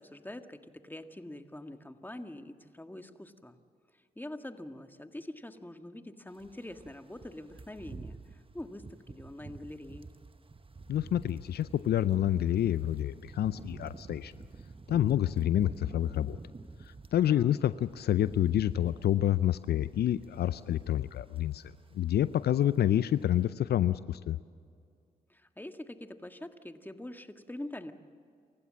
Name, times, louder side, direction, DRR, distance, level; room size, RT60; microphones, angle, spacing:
voice 1, 0.0-3.6 3.9-10.1 17.3-17.5 25.3-27.9, left 1 dB, 10° left, 7 dB, 1.8 m, -44 dB
sound 1, 6.3-17.3 17.6-21.0 21.3-21.6 21.9-22.7 23.0-23.2, right 3 dB, 30° right, 1.2 m, -48 dB
voice 2, 10.9-14.3 14.9-16.4 17.1-21.6 21.9-24.4, left 11 dB, 70° left, 15 dB, 0.5 m, -28 dB
28.0 x 15.5 x 7.6 m, 2.2 s
supercardioid pair, 45°, 17 cm